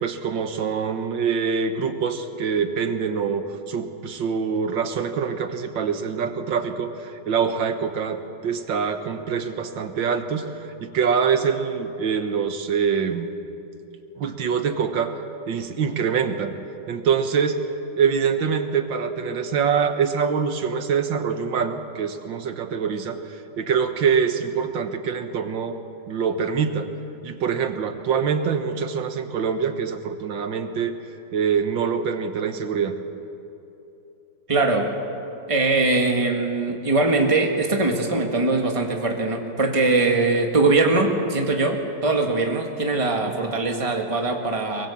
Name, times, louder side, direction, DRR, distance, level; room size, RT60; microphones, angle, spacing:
voice 1, 0.0-13.3 14.2-15.2 15.5-16.5 16.9-17.6 18.0-25.8 26.1-26.9 27.2-31.0 31.3-33.0 43.2-43.5, right 6 dB, 90° right, 8 dB, 2.0 m, -24 dB
voice 2, 34.5-34.9 35.5-44.9, right 3 dB, 20° right, 2 dB, 1.8 m, -21 dB
24.0 x 21.5 x 7.3 m, 2.9 s
omnidirectional pair, 2.0 m